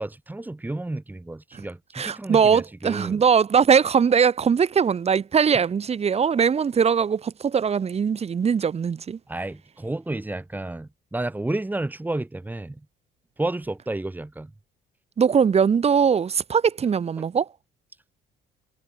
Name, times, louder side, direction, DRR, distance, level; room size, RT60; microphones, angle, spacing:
voice 1, 0.0-3.2 9.3-12.8 13.4-14.5, right 2 dB, 10° right, 5.0 m, -31 dB
voice 2, 1.9-9.2 15.2-17.5, right 6 dB, 40° right, 6.4 m, -21 dB
cardioid pair, 110°, 17 cm